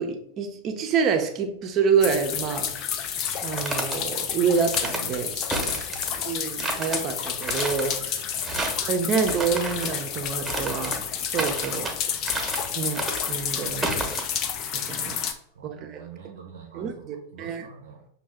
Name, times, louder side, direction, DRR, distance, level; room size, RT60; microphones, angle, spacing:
voice 1, 0.0-2.7 3.4-5.8 6.3-8.4 8.8-11.9 12.8-14.2 14.7-15.2 15.6-16.0 16.7-17.7, right 6 dB, 40° right, 5 dB, 0.6 m, -27 dB
sound 1, 2.0-15.3, left 8 dB, 45° left, 0.4 m, -30 dB
sound 2, 3.3-4.0 4.5-5.0 5.5-6.2 6.6-7.0 7.4-8.0 8.4-8.9 9.2-9.9 10.5-11.0 11.4-11.9 12.2-12.7 12.9-13.4 13.8-14.2, right 2 dB, 10° right, 1.0 m, -31 dB
voice 2, 5.6-6.2 8.3-8.9 15.5-18.1, right 7 dB, 75° right, 2 dB, 0.7 m, -46 dB
5.3 x 2.3 x 3.5 m, 0.71 s
figure-of-eight pair, 90°, 0 cm